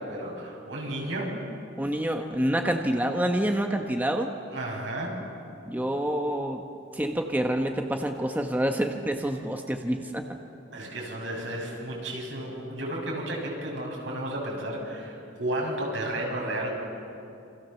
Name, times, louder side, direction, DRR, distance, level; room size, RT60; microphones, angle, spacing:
voice 1, 0.0-1.4 4.5-5.2 10.7-16.7, right 1 dB, 75° right, -1 dB, 7.2 m, -33 dB
voice 2, 1.8-4.3 5.7-6.6 6.9-10.3, right 1 dB, 10° right, 3 dB, 1.2 m, -27 dB
28.5 x 26.0 x 7.1 m, 2.6 s
head